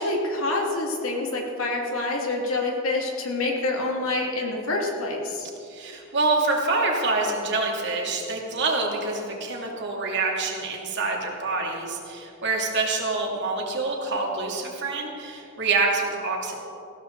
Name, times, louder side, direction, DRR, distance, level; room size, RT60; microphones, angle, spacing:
voice 1, 0.0-5.5, left 2 dB, 70° left, 0 dB, 2.6 m, -27 dB
voice 2, 5.6-16.5, right 3 dB, 55° right, -1 dB, 2.8 m, -26 dB
20.0 x 16.0 x 4.0 m, 2.6 s
head